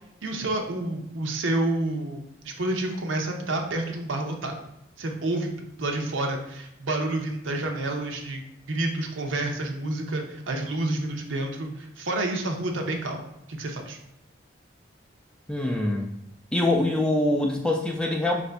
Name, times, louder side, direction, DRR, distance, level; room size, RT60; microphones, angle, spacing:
voice 1, 0.2-2.2 2.4-4.6 5.0-5.5 5.8-8.4 8.7-13.2 13.5-14.0, right 2 dB, 85° right, 2 dB, 0.7 m, -29 dB
voice 2, 15.5-16.1 16.5-18.4, left 1 dB, 5° left, 1 dB, 0.3 m, -24 dB
4.9 x 2.6 x 3.3 m, 0.80 s
head